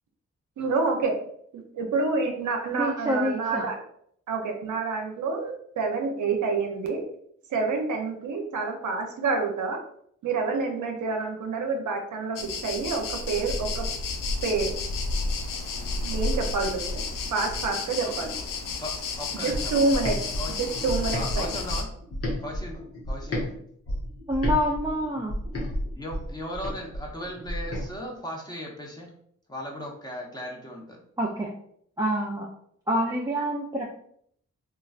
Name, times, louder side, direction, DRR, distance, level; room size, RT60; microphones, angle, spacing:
voice 1, 0.6-1.2 1.5-3.8 4.3-7.0 7.5-9.8 10.2-12.4 12.6-13.9 14.4-14.7 16.0-17.0 17.3-18.3 19.4-20.2 20.5-21.5, right 4 dB, 70° right, 3 dB, 0.6 m, -28 dB
voice 2, 2.7-3.7 24.3-25.4 31.2-31.5 32.0-32.5 32.9-33.8, equal, 10° right, -3 dB, 0.5 m, -27 dB
sound 1, 12.4-21.8, left 3 dB, 80° left, 0.5 m, -31 dB
voice 3, 19.2-20.5 21.1-21.9 22.4-22.8 23.1-23.4 25.9-29.1 29.5-31.0, equal, 10° left, -2 dB, 1.0 m, -37 dB
sound 2, 19.5-23.5 23.9-27.9, equal, 45° left, 1.0 m, -31 dB
3.0 x 2.4 x 2.4 m, 0.66 s
supercardioid pair, 40°, 32 cm